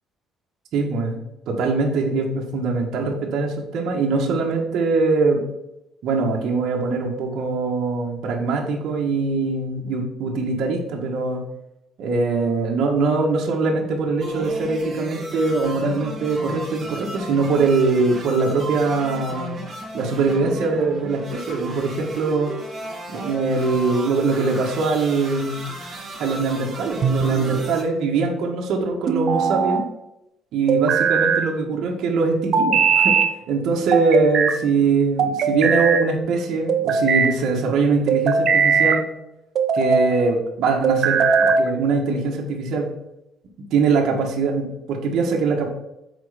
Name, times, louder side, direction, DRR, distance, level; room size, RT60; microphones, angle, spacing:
voice 1, 0.7-1.2 1.5-5.4 6.0-11.4 12.0-19.5 19.9-22.6 23.1-25.7 26.2-29.9 30.5-33.1 33.5-39.0 39.7-42.9 43.7-45.7, right 4 dB, 60° right, -1 dB, 1.5 m, -22 dB
sound 1, 14.2-27.8, right 1 dB, 20° right, 2.7 m, -35 dB
sound 2, 27.0-27.7 29.1-29.8 30.7-31.5 32.5-33.3 33.9-34.6 35.2-36.1 36.7-37.3 38.1-39.0 39.5-40.1 40.8-41.7, right 6 dB, 45° right, 0.7 m, -19 dB
7.5 x 4.3 x 5.0 m, 0.87 s
cardioid pair, 165°, 0 cm